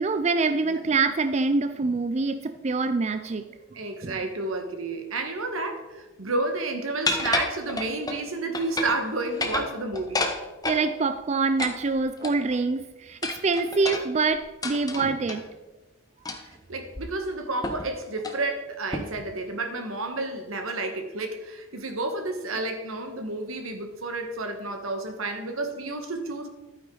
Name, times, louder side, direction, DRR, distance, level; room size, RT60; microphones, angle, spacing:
voice 1, 0.0-3.6 4.0-4.2 10.6-15.5, right 4 dB, 35° right, 9 dB, 0.4 m, -25 dB
voice 2, 3.7-10.3 16.4-26.5, right 2 dB, 80° right, 5 dB, 1.5 m, -31 dB
sound 1, 7.0-8.2 8.5-9.0 9.3-10.8 11.6-12.6 13.2-15.4 16.2-16.6 16.9-17.0 17.6-17.9 18.2-18.4 18.9-19.3, left 2 dB, 20° left, 1.0 m, -30 dB
12.0 x 9.1 x 3.9 m, 1.1 s
head